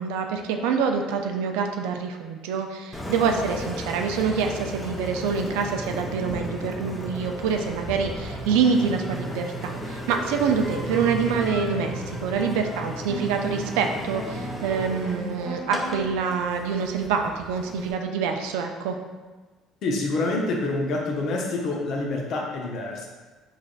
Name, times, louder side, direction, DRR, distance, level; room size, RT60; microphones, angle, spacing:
voice 1, 0.0-19.0, right 6 dB, 85° right, 4 dB, 0.3 m, -26 dB
Engine, 2.9-17.9, equal, 10° left, 0.6 m, -34 dB
voice 2, 19.8-23.1, left 2 dB, 60° left, 0 dB, 0.7 m, -27 dB
3.8 x 3.2 x 2.4 m, 1.3 s
supercardioid pair, 80°, 0 cm